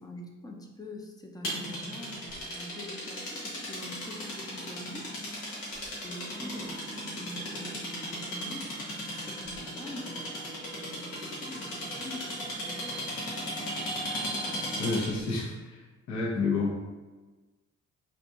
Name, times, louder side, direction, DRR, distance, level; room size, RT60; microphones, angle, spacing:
voice 1, 0.0-5.1 6.0-8.7 9.1-13.7, equal, 15° left, 1 dB, 0.5 m, -45 dB
sound 1, 1.4-15.2, equal, 90° left, 1.0 m, -36 dB
voice 2, 14.8-15.8 16.1-16.8, left 3 dB, 65° left, -3 dB, 0.8 m, -29 dB
2.8 x 2.4 x 3.5 m, 1.3 s
cardioid pair, 90°, 30 cm